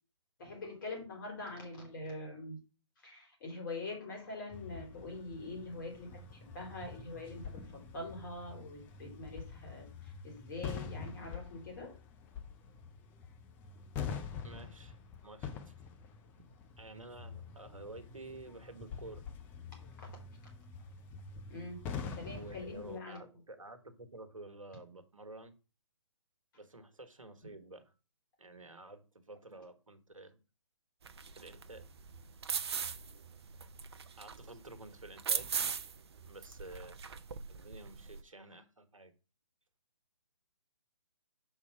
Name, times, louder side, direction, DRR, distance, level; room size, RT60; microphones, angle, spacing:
voice 1, 0.4-2.6 3.0-12.0 20.0-20.1 21.5-21.9 22.1-23.2 26.5-26.6, left 2 dB, 40° left, 1 dB, 3.4 m, -44 dB
sound 1, 4.5-23.0, left 6 dB, 10° left, 0.5 m, -46 dB
voice 2, 14.4-15.7 16.8-19.2 22.1-25.6 26.5-27.9 28.4-30.4 31.4-31.8 34.2-35.6 36.3-37.0 37.5-39.1, right 2 dB, 80° right, 9 dB, 1.2 m, -51 dB
sound 2, 31.0-38.2, right 6 dB, 50° right, 0.6 m, -40 dB
5.6 x 4.2 x 5.7 m, 0.33 s
figure-of-eight pair, 135°, 17 cm